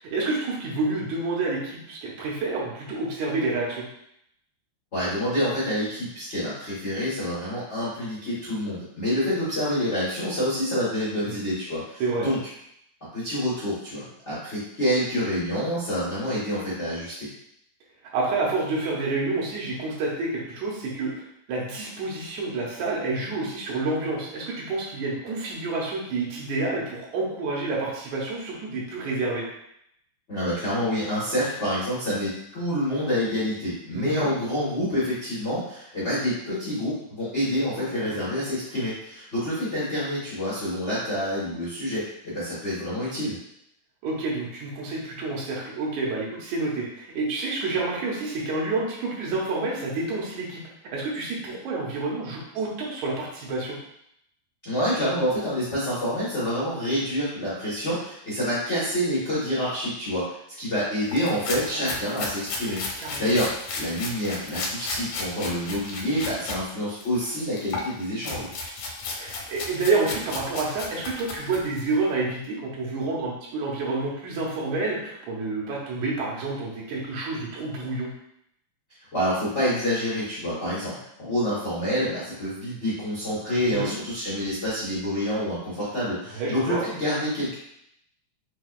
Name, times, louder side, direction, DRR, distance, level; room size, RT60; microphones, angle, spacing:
voice 1, 0.1-3.9 11.2-11.4 12.0-12.3 18.1-21.1 21.5-29.4 33.9-34.3 37.8-38.3 44.0-50.6 50.9-53.8 61.7-62.0 63.0-63.3 69.2-78.1 83.5-84.0 86.3-86.8, right 3 dB, 75° right, -4 dB, 2.1 m, -29 dB
voice 2, 4.9-12.4 13.1-17.3 30.3-43.4 54.6-60.2 60.6-62.8 63.2-63.5 63.7-68.5 79.1-87.5, equal, 65° left, -10 dB, 0.6 m, -27 dB
sound 1, 61.1-66.6 67.0-71.9, left 3 dB, 90° left, 2.1 m, -34 dB
5.9 x 2.3 x 2.4 m, 0.75 s
omnidirectional pair, 3.5 m